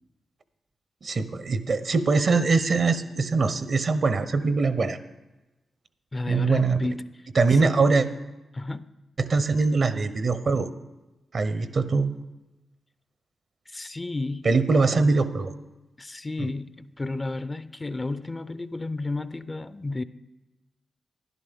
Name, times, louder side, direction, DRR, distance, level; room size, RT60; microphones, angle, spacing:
voice 1, 1.0-5.0 6.3-6.8 7.4-8.1 9.2-10.7 11.3-12.2 14.4-15.5, right 4 dB, 60° right, 12 dB, 0.7 m, -22 dB
voice 2, 6.1-7.1 7.5-7.8 8.5-8.9 13.7-14.5 16.0-20.0, left 2 dB, 30° left, 14 dB, 0.4 m, -32 dB
12.0 x 10.5 x 3.6 m, 1.1 s
supercardioid pair, 45°, 0 cm